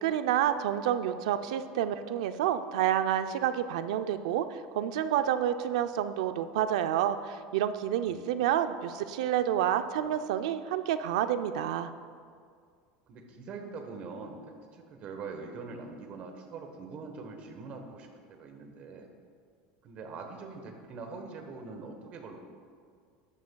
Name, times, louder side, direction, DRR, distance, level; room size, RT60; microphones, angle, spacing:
voice 1, 0.0-11.9, right 10 dB, 85° right, 10 dB, 0.5 m, -29 dB
voice 2, 7.9-8.3 13.1-14.4 14.7-19.1 19.8-22.4, right 4 dB, 35° right, 4 dB, 1.1 m, -43 dB
13.5 x 9.5 x 2.3 m, 2.1 s
cardioid pair, 165°, 3 cm